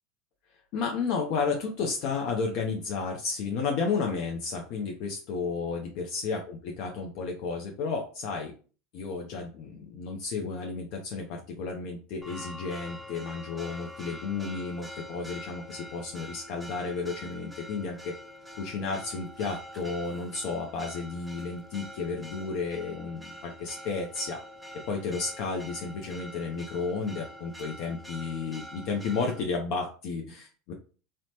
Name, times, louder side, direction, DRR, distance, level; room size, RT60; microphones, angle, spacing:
voice 1, 0.7-8.5 8.9-18.1 18.6-24.4 24.9-30.7, left 4 dB, 60° left, 1 dB, 0.5 m, -32 dB
Church bell, 12.2-29.4, equal, 5° right, 0.5 m, -45 dB
3.0 x 2.1 x 2.8 m, 0.38 s
hypercardioid pair, 80°, 0 cm